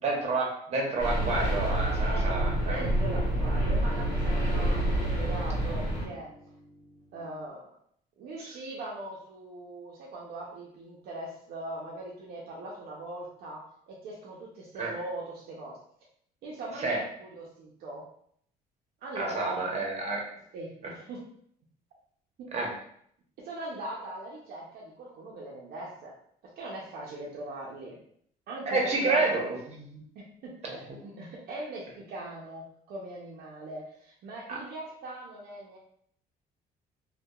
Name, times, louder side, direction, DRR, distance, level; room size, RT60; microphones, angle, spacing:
voice 1, 0.0-2.7 14.8-14.9 16.8-17.0 19.2-20.2 22.5-22.7 28.7-30.0 30.6-30.8 34.5-34.6, right 3 dB, 40° right, -1 dB, 0.8 m, -29 dB
sound 1, 1.0-6.1, right 1 dB, 50° left, 1.2 m, -27 dB
sound 2, 2.1-7.5, equal, 20° left, 1.4 m, -44 dB
voice 2, 2.6-6.3 7.1-7.7 8.2-15.8 16.4-18.0 19.0-19.8 20.5-21.2 22.4-22.8 23.4-26.1 26.6-28.0 28.5-29.2 30.1-35.8, right 2 dB, 65° right, -4 dB, 0.6 m, -40 dB
2.7 x 2.2 x 2.3 m, 0.65 s
cardioid pair, 110°, 17 cm